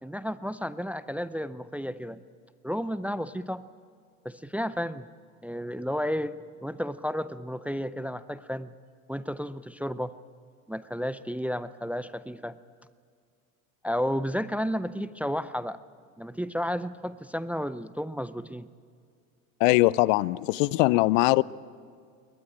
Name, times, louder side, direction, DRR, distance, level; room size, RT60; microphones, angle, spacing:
voice 1, 0.0-2.2 2.6-3.6 4.2-5.1 5.4-6.3 6.6-8.7 9.1-10.1 10.7-12.6 13.8-15.8 16.2-18.7, equal, 5° right, 15 dB, 0.5 m, -32 dB
voice 2, 19.6-21.4, left 21 dB, 60° left, 22 dB, 0.6 m, -21 dB
21.5 x 19.0 x 8.8 m, 2.2 s
hypercardioid pair, 80°, 43 cm